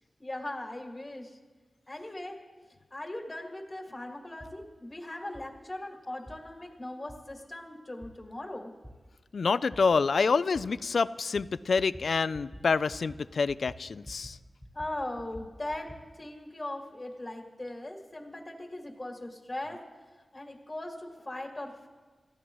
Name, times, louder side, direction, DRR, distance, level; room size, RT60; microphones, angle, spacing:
voice 1, 0.2-1.3 1.9-2.4 2.9-8.7 14.7-15.9 16.2-19.8 20.3-21.9, left 1 dB, 20° left, 1 dB, 2.1 m, -39 dB
sound 1, 4.4-4.6 5.3-5.5 6.3-6.4 7.1-7.2 8.0-8.1 8.8-8.9 9.7-9.8 10.5-10.7 11.4-11.5 11.8-12.1 12.3-12.6 12.9-13.2 13.5-14.4 14.6-16.0, equal, ahead, 5.0 m, -47 dB
voice 2, 9.3-14.4, left 4 dB, 75° left, 16 dB, 0.4 m, -27 dB
29.0 x 14.5 x 3.1 m, 1.4 s
wide cardioid pair, 85°, 0 cm